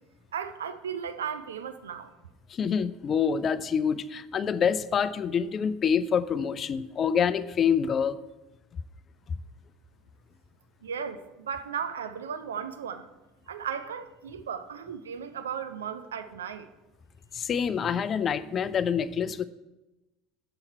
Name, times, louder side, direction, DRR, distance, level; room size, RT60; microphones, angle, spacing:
voice 1, 0.3-2.1 10.8-13.1 13.5-16.7, right 7 dB, 70° right, 0.5 m, -35 dB
voice 2, 2.5-8.2 17.3-19.4, left 7 dB, 35° left, 0.4 m, -26 dB
7.8 x 7.1 x 4.4 m
figure-of-eight pair, 70°, 0 cm